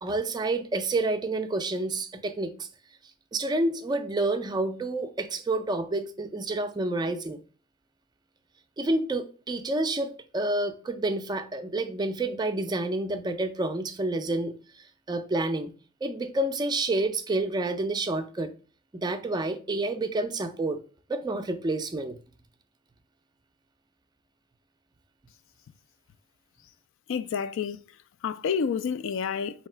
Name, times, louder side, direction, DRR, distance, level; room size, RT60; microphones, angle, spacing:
voice 1, 0.0-2.7 3.3-7.4 8.8-14.5 15.1-15.7 16.0-18.5 18.9-20.8 21.1-22.2, right 2 dB, 20° right, 0.4 m, -29 dB
voice 2, 27.1-27.8 28.2-29.7, left 6 dB, 60° left, 0.3 m, -29 dB
4.0 x 2.8 x 4.4 m
head